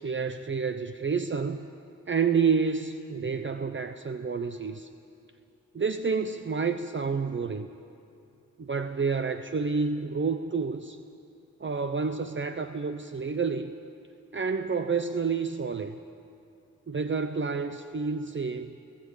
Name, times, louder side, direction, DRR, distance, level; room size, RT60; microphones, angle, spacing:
voice 1, 0.0-1.7 2.1-4.9 5.7-7.7 8.6-11.0 11.6-13.7 14.3-16.0 16.9-18.8, right 5 dB, 35° right, 9 dB, 0.8 m, -29 dB
20.0 x 17.0 x 8.4 m, 2.6 s
cardioid pair, 65°, 32 cm